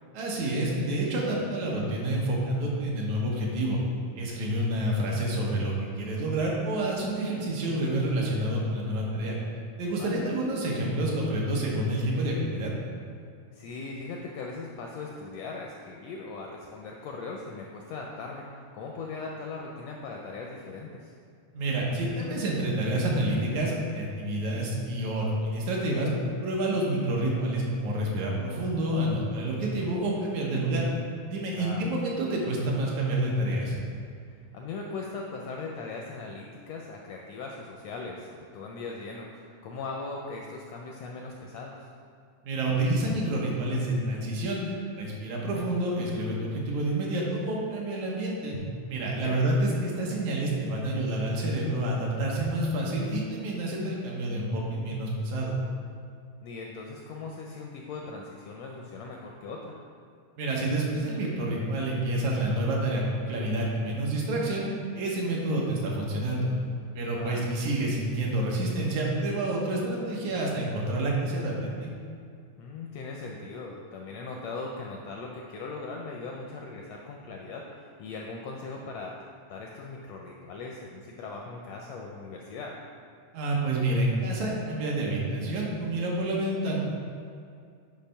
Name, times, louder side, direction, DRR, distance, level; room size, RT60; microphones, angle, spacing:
voice 1, 0.1-3.8 4.2-9.4 9.8-12.7 21.5-26.1 26.4-30.9 31.3-33.8 42.4-48.6 48.9-55.5 60.4-64.7 64.9-66.5 66.9-71.9 83.3-86.8, right 1 dB, 75° right, -3 dB, 2.3 m, -28 dB
voice 2, 13.5-21.1 31.5-31.9 34.3-41.9 49.1-49.4 56.4-59.8 67.1-67.5 72.6-79.2 79.5-82.7, left 3 dB, 80° left, 0 dB, 1.5 m, -39 dB
8.3 x 3.3 x 5.6 m, 2.4 s
omnidirectional pair, 3.4 m